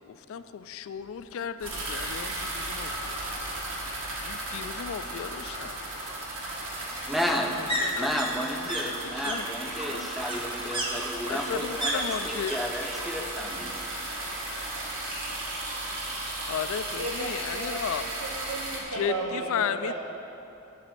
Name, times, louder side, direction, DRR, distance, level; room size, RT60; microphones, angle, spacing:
voice 1, 0.1-3.1 4.2-5.8 6.9-7.1 7.6-8.1 8.5-9.5 9.9-10.1 11.3-12.5 16.5-18.1 18.9-19.9, left 7 dB, 65° left, 12 dB, 0.3 m, -35 dB
sound 1, 1.6-18.8, right 1 dB, 60° right, 1.7 m, -35 dB
sound 2, 1.7-1.8 2.2-2.3 2.5-3.5 4.8-12.6 12.8-13.4 13.7-14.7 15.0-15.1, right 1 dB, 25° right, 1.0 m, -35 dB
voice 2, 7.1-7.7 8.0-13.8, equal, ahead, 2 dB, 0.6 m, -32 dB
voice 3, 16.9-19.9, right 2 dB, 85° right, -3 dB, 0.8 m, -35 dB
11.0 x 4.1 x 7.6 m, 2.8 s
head